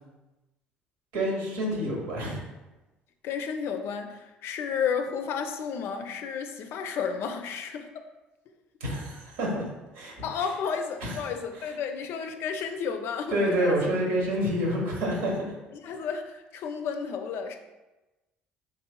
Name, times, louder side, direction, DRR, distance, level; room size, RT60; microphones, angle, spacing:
voice 1, 1.1-2.4 8.8-9.6 9.9-10.5 11.0-11.2 11.6-11.7 13.3-15.5, equal, 75° right, -2 dB, 1.1 m, -28 dB
voice 2, 3.2-8.0 10.2-13.8 15.7-17.6, left 6 dB, 60° left, 6 dB, 0.4 m, -32 dB
4.0 x 3.0 x 2.2 m, 1.1 s
hypercardioid pair, 60°, 5 cm